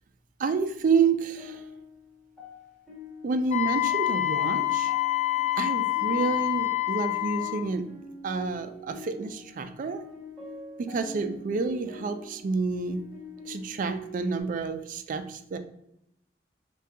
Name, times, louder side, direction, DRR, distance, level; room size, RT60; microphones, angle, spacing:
voice 1, 0.4-1.6 3.2-4.9 5.6-7.9 8.2-10.0 10.8-13.0 13.5-15.6, right 4 dB, 50° right, 9 dB, 0.3 m, -29 dB
sound 1, 0.9-14.4, left 1 dB, 5° left, 0.9 m, -45 dB
Wind instrument woodwind instrument, 3.5-7.6, left 16 dB, 45° left, 0.4 m, -27 dB
3.4 x 2.3 x 2.7 m, 0.77 s
head